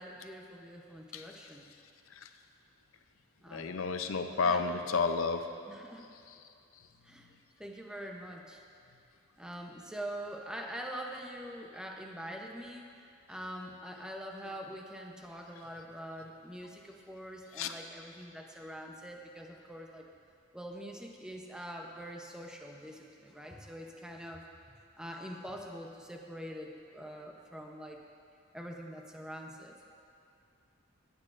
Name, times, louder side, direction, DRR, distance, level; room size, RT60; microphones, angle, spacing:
voice 1, 0.0-1.7 3.4-3.8 4.4-4.7 5.7-6.1 7.0-7.3 7.6-8.6 9.4-12.9 13.3-20.1 20.5-24.4 25.0-28.0 28.5-29.7, equal, 5° right, 1 dB, 0.7 m, -44 dB
voice 2, 3.5-5.5 17.6-17.7, left 4 dB, 75° left, 7 dB, 0.6 m, -31 dB
17.5 x 8.6 x 2.5 m, 2.6 s
head